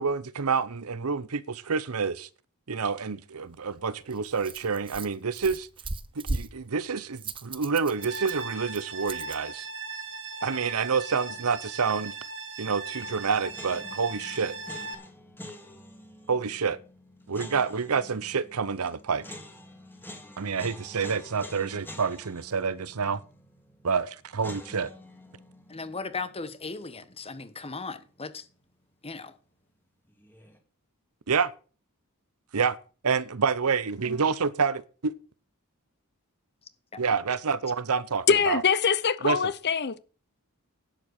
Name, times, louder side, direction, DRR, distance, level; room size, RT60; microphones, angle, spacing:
voice 1, 0.0-2.3 2.7-5.7 6.2-9.7 10.4-12.1 12.6-14.6 16.3-16.8 17.3-19.2 20.4-23.2 23.8-24.9 31.3-31.5 32.5-32.8 33.0-35.1 37.0-38.6 39.2-39.5, right 5 dB, 75° right, 0.8 m, -28 dB
Rattle, 3.4-9.4, right 3 dB, 25° right, 0.8 m, -39 dB
sound 1, 8.0-14.9, right 4 dB, 55° right, 2.2 m, -38 dB
sound 2, 13.0-28.0 28.2-28.3 30.1-30.6, left 1 dB, 10° left, 2.1 m, -48 dB
voice 2, 25.7-28.4 29.0-29.3, left 4 dB, 25° left, 1.2 m, -37 dB
voice 3, 38.3-40.0, left 6 dB, 50° left, 0.8 m, -23 dB
11.5 x 7.7 x 6.5 m
head